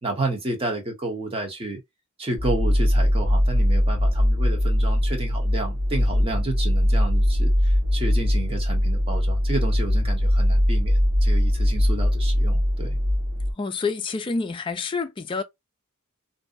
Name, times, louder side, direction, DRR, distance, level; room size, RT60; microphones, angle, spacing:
voice 1, 0.0-1.8 2.2-13.0, right 2 dB, 25° right, 0.9 m, -31 dB
sound 1, 2.4-13.5, equal, 85° right, 0.9 m, -21 dB
voice 2, 13.6-15.4, left 4 dB, 25° left, 0.3 m, -28 dB
2.6 x 2.1 x 2.3 m
head